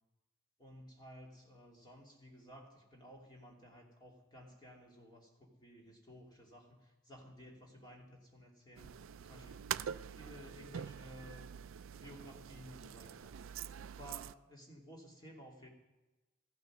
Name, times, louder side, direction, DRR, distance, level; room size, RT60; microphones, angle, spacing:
voice 1, 0.6-8.9 9.2-15.7, equal, 20° left, -1 dB, 2.7 m, -55 dB
sound 1, 8.8-14.3, right 9 dB, 65° right, 0.4 m, -45 dB
15.0 x 13.5 x 6.2 m, 1.1 s
head